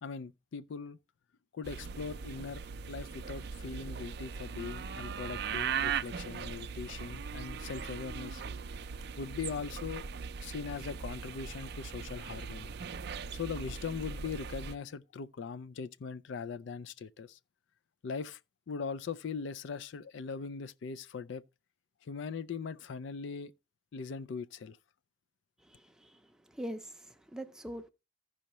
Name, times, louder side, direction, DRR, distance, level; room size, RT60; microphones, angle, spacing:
voice 1, 0.0-1.0 1.5-8.4 9.2-10.0 10.4-12.7 13.3-17.4 18.0-18.4 18.7-21.4 22.0-23.5 23.9-24.8, left 5 dB, 65° left, 0.4 m, -40 dB
sound 1, 1.6-14.8, right 6 dB, 50° right, 0.4 m, -39 dB
voice 2, 25.6-26.2 26.5-27.9, equal, 5° right, 0.6 m, -43 dB
15.0 x 5.6 x 3.0 m
head